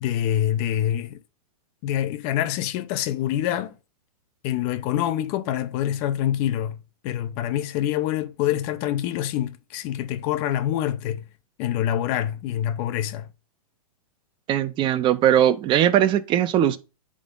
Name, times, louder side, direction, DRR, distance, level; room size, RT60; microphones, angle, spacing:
voice 1, 0.0-1.2 1.8-3.8 4.4-6.8 7.0-11.2 11.6-13.3, left 11 dB, 40° left, 0.7 m, -26 dB
voice 2, 14.5-16.8, right 11 dB, 25° right, 0.7 m, -20 dB
9.7 x 3.8 x 3.8 m
hypercardioid pair, 125°, 19 cm